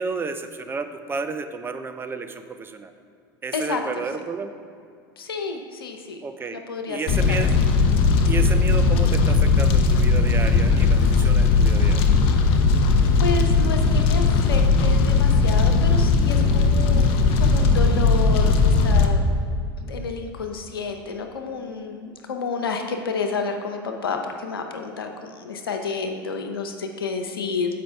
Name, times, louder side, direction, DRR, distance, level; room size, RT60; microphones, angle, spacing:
voice 1, 0.0-2.9 3.4-4.5 6.2-7.5 8.2-12.0, right 4 dB, 20° right, 8 dB, 0.5 m, -31 dB
voice 2, 3.5-4.0 5.2-6.2 6.5-7.4 13.2-17.0 17.4-19.6 19.8-27.8, left 4 dB, 90° left, 5 dB, 0.6 m, -30 dB
Fire, 7.1-19.1, left 4 dB, 55° left, 0.7 m, -18 dB
7.7 x 5.1 x 3.4 m, 2.3 s
hypercardioid pair, 85°, 12 cm